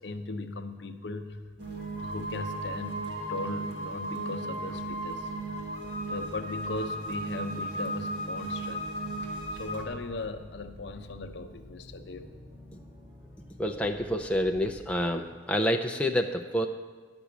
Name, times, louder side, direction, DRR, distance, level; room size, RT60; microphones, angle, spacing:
voice 1, 0.0-1.4 2.0-5.3 6.1-8.9 9.5-12.3, left 2 dB, 60° left, 7 dB, 0.7 m, -38 dB
sound 1, 1.3-15.0, left 1 dB, 15° right, 1.5 m, -52 dB
sound 2, 1.6-9.9, right 1 dB, 55° right, 1.7 m, -35 dB
voice 2, 13.6-16.7, equal, 5° left, 3 dB, 0.4 m, -28 dB
11.5 x 6.0 x 8.3 m, 1.4 s
head